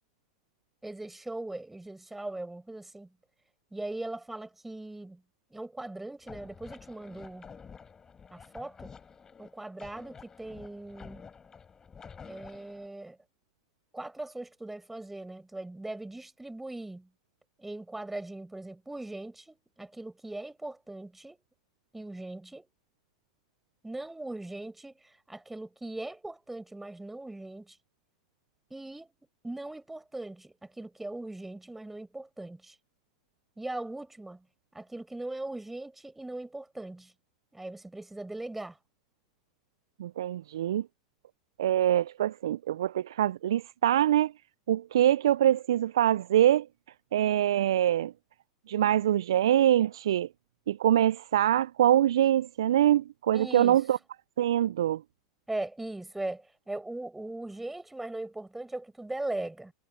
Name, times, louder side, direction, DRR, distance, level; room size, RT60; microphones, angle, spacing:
voice 1, 0.8-3.1 3.7-5.2 5.5-7.5 8.3-9.0 9.4-11.3 12.3-13.2 13.9-17.1 17.6-21.4 21.9-22.7 23.8-27.8 28.7-29.1 29.4-32.8 33.6-34.5 34.7-37.1 37.5-38.8 53.3-53.8 55.5-59.7, right 2 dB, 5° right, 7.1 m, -39 dB
sound 1, 6.2-12.9, left 6 dB, 20° left, 6.9 m, -50 dB
voice 2, 40.0-40.9 41.6-44.3 44.7-46.7 47.1-48.1 48.7-50.3 50.7-54.0 54.4-55.0, right 11 dB, 70° right, 0.5 m, -24 dB
hypercardioid pair, 90°, 3 cm